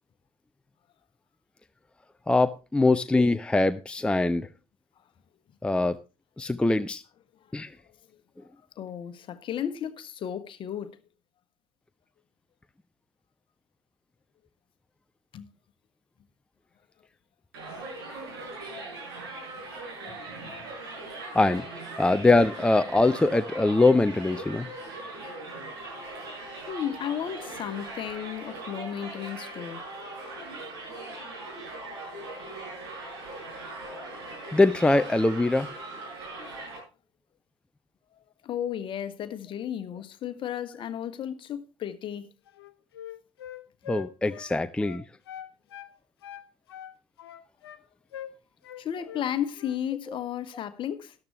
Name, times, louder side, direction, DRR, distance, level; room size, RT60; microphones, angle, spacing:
voice 1, 2.3-4.5 5.6-6.0 6.4-7.0 7.5-7.7 21.3-21.7 22.0-24.7 34.5-35.7 43.9-45.0, left 2 dB, 5° left, 0.6 m, -22 dB
voice 2, 8.8-11.0 15.3-15.5 20.1-20.7 26.7-29.8 38.4-42.3 48.8-51.1, left 9 dB, 40° left, 1.3 m, -34 dB
Crowd, 17.5-36.8, right 2 dB, 65° right, 7.5 m, -40 dB
Wind instrument woodwind instrument, 42.5-45.9 46.2-47.8 48.1-48.3 48.6-49.3 49.5-49.8, left 10 dB, 70° left, 1.1 m, -43 dB
13.5 x 12.0 x 3.1 m
figure-of-eight pair, 60°, 13 cm